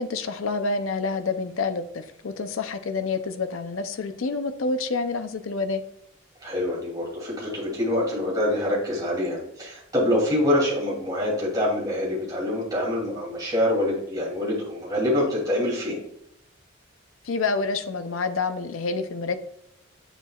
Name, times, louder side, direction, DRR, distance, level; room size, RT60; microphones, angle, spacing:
voice 1, 0.0-5.8 17.2-19.4, left 4 dB, 85° left, 9 dB, 0.5 m, -28 dB
voice 2, 6.4-16.0, left 1 dB, 20° right, -5 dB, 2.7 m, -25 dB
7.4 x 7.1 x 2.3 m, 0.77 s
head